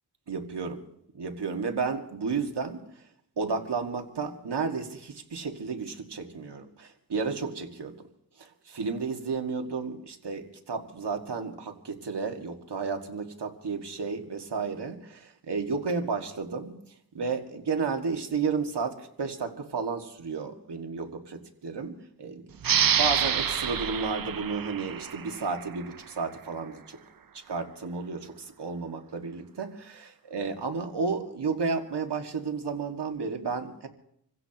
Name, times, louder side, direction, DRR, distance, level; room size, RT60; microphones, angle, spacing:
voice 1, 0.3-0.8 1.1-2.8 3.4-7.9 8.4-16.8 17.1-22.5 22.9-27.0 27.3-33.9, right 4 dB, 75° right, 4 dB, 2.0 m, -32 dB
sound 1, 22.6-25.9, right 8 dB, 55° right, 0.7 m, -27 dB
27.5 x 16.0 x 2.9 m, 0.72 s
cardioid pair, 60°, 41 cm